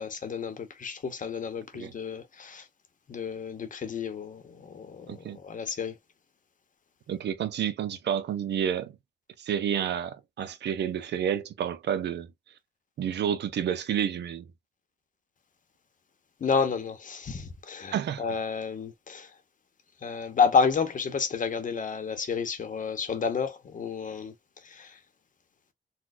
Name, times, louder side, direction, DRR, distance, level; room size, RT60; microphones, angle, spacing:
voice 1, 0.0-2.6 3.1-6.0 16.4-19.3 20.0-24.3 24.6-25.0, left 5 dB, 50° left, 0.9 m, -30 dB
voice 2, 5.1-5.4 7.1-9.0 9.4-12.3 13.0-14.5 17.9-18.2, right 9 dB, 75° right, 0.6 m, -30 dB
4.1 x 2.2 x 2.4 m
cardioid pair, 110°, 18 cm